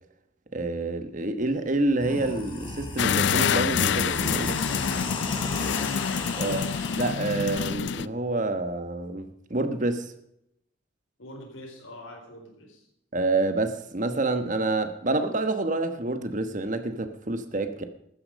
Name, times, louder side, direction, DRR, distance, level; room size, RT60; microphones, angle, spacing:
voice 1, 0.5-4.6 6.4-6.7 6.9-10.1 13.1-17.8, right 2 dB, 40° right, 1.2 m, -28 dB
sound 1, 1.4-1.5 1.9-7.1, left 2 dB, 25° left, 2.0 m, -35 dB
sound 2, 3.0-8.1, left 7 dB, 60° left, 0.4 m, -27 dB
voice 2, 5.4-6.0 11.2-12.9, equal, 90° left, 4.4 m, -44 dB
13.0 x 9.8 x 5.2 m
head